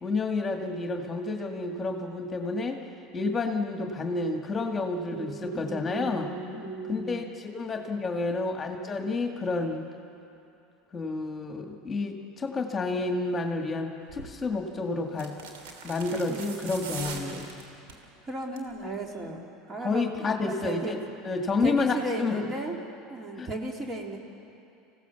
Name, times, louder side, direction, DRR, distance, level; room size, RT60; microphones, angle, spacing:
voice 1, 0.0-2.8 3.1-6.3 6.9-9.8 10.9-15.3 15.8-17.6 19.8-21.0 21.2-22.5 23.4-23.5, left 3 dB, 25° left, 3 dB, 2.0 m, -30 dB
voice 2, 5.1-7.3 16.3-17.4 18.2-21.0 21.6-22.8 23.1-24.2, right 2 dB, 30° right, 1 dB, 3.1 m, -36 dB
sound 1, 14.1-14.3 15.1-18.0 18.4-18.8 19.0-19.1, right 5 dB, 70° right, 3.0 m, -41 dB
25.5 x 16.5 x 7.1 m, 2.7 s
hypercardioid pair, 85°, 0 cm